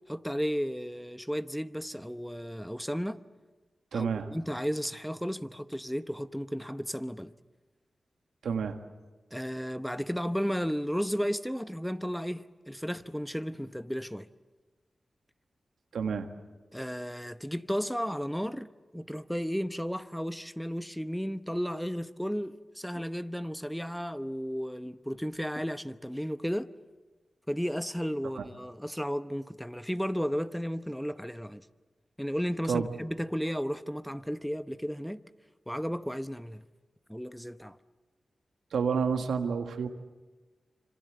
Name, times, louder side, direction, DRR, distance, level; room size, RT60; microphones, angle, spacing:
voice 1, 0.1-3.2 3.9-7.3 9.3-14.3 16.7-18.7 18.9-26.7 27.5-31.7 32.2-35.2 35.7-36.6 37.1-37.8, equal, ahead, 0.9 m, -34 dB
voice 2, 3.9-4.3 8.4-8.8 15.9-16.3 28.3-28.4 32.7-32.9 38.7-39.9, right 6 dB, 90° right, 1.6 m, -29 dB
26.0 x 26.0 x 7.9 m
cardioid pair, 45°, 0 cm